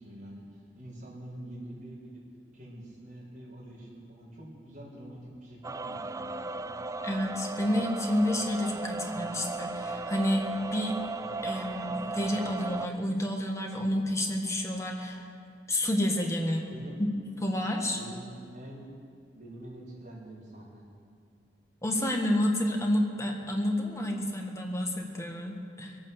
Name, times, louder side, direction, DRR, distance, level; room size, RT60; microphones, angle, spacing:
voice 1, 0.0-2.2 2.5-6.6 16.6-17.0 17.9-18.9 19.3-20.9, right 1 dB, 45° right, -6 dB, 5.3 m, -46 dB
sound 1, 5.6-12.9, right 3 dB, 20° right, 0.3 m, -36 dB
voice 2, 7.0-10.9 11.4-15.2 15.7-16.7 17.0-17.1 17.4-18.0 21.8-26.0, left 1 dB, 15° left, 1 dB, 1.4 m, -29 dB
21.5 x 8.9 x 7.1 m, 2.3 s
head